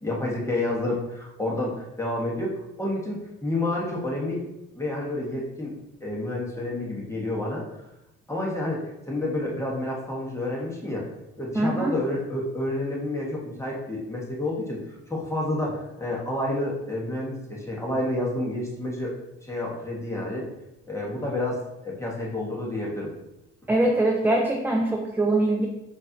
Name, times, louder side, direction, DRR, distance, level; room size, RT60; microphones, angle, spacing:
voice 1, 0.0-2.5 2.8-4.4 4.7-5.7 6.0-7.6 8.3-11.1 11.4-14.8 15.1-19.1 19.4-20.4 20.8-23.1, left 1 dB, 10° left, -3 dB, 1.4 m, -29 dB
voice 2, 11.5-11.9 23.7-25.7, right 2 dB, 5° right, 1 dB, 0.4 m, -23 dB
4.4 x 2.8 x 2.9 m, 0.93 s
supercardioid pair, 60°, 31 cm